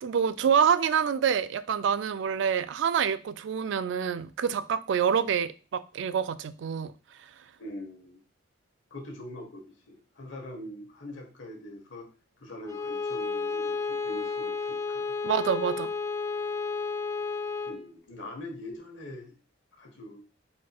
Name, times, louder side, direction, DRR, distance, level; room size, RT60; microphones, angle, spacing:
voice 1, 0.0-6.9 15.2-15.9, right 7 dB, 70° right, 0.3 m, -26 dB
voice 2, 7.6-8.2 8.9-12.1 12.4-15.1 17.6-19.3 19.8-20.2, left 1 dB, 80° left, 1.2 m, -43 dB
Bowed string instrument, 12.7-17.9, left 4 dB, 15° left, 0.4 m, -32 dB
4.2 x 2.4 x 4.4 m
head